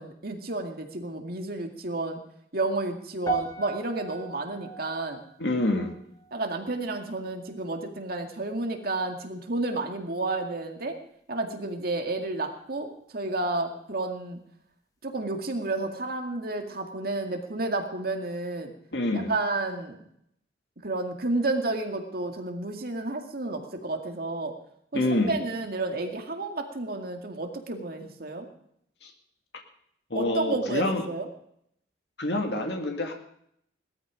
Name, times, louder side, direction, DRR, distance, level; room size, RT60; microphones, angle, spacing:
voice 1, 0.0-2.2 2.5-5.2 6.3-11.0 11.3-14.4 15.0-18.7 19.1-20.0 20.8-24.6 24.9-28.5 30.1-31.3, right 2 dB, 55° right, 4 dB, 2.1 m, -31 dB
sound 1, 3.3-7.6 7.9-8.3 8.9-9.0, right 3 dB, 20° left, 1.3 m, -38 dB
voice 2, 5.4-5.9 18.9-19.3 24.9-25.4 29.0-29.1 30.1-31.1 32.2-33.1, left 1 dB, 70° left, 3 dB, 2.1 m, -27 dB
18.5 x 13.0 x 5.0 m, 0.71 s
head